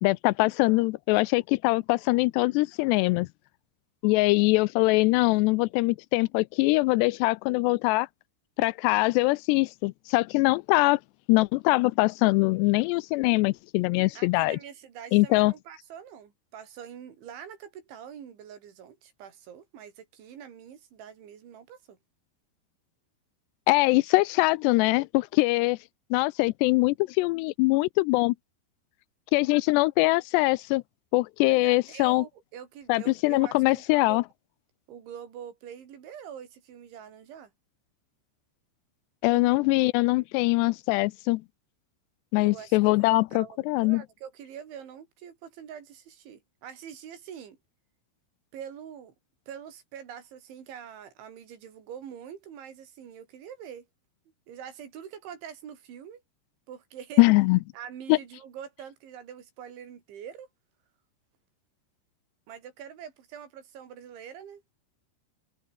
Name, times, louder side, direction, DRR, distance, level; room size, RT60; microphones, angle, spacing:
voice 1, 0.0-3.3 4.0-8.1 8.6-11.0 11.3-14.6 15.1-15.5 23.7-25.8 26.1-28.4 29.3-30.8 31.1-32.3 32.9-34.2 39.2-41.4 42.3-44.0 57.2-57.6 58.1-58.2, left 23 dB, 85° left, 2.5 m, -23 dB
voice 2, 14.2-22.0 31.5-34.2 34.9-37.5 39.3-39.6 42.3-47.6 48.5-49.1 49.5-53.9 54.5-56.2 56.7-57.2 57.7-60.5 62.5-64.6, right 8 dB, 90° right, 5.8 m, -44 dB
omnidirectional pair, 5.2 m